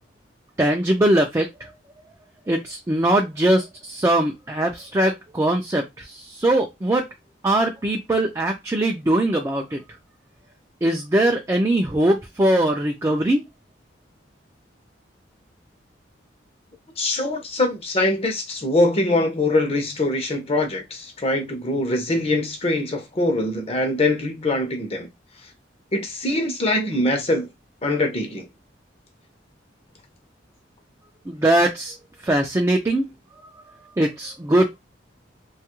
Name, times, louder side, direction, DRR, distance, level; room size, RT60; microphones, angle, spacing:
voice 1, 0.6-1.5 2.5-7.1 7.4-9.8 10.8-13.4 31.3-31.9 32.2-33.1 34.0-34.8, right 1 dB, 15° right, 0.4 m, -21 dB
voice 2, 17.0-25.1 25.9-27.5 27.8-28.4, left 2 dB, 35° left, 0.6 m, -23 dB
2.8 x 2.3 x 2.9 m
head